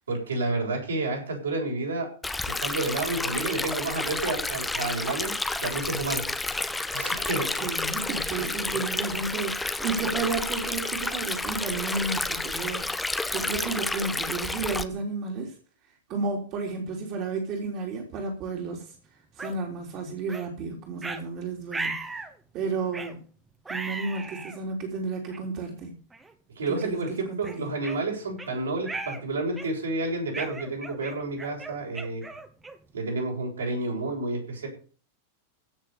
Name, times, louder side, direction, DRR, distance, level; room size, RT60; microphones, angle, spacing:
voice 1, 0.1-2.1 2.4-5.3 5.6-6.2 6.9-7.7 8.3-8.8 26.5-32.2 32.9-34.7, right 2 dB, 70° right, 0 dB, 6.7 m, -30 dB
Stream, 2.2-14.8, left 2 dB, 10° left, 1.2 m, -30 dB
voice 2, 7.4-12.9 13.3-15.5 16.1-18.9 19.4-22.2 22.5-23.2 23.7-25.9 26.7-27.7, right 4 dB, 40° right, 1 dB, 3.6 m, -32 dB
sound 1, 19.4-19.5 20.3-20.5 21.0-21.2 21.7-22.3 22.9-23.2 23.6-24.6 25.3-25.4 26.1-26.3 26.7-26.9 27.4-28.5 28.8-29.2 29.5-29.9 30.3-32.9, right 3 dB, 10° right, 2.0 m, -36 dB
16.0 x 6.9 x 6.9 m, 0.39 s
figure-of-eight pair, 90°, 0 cm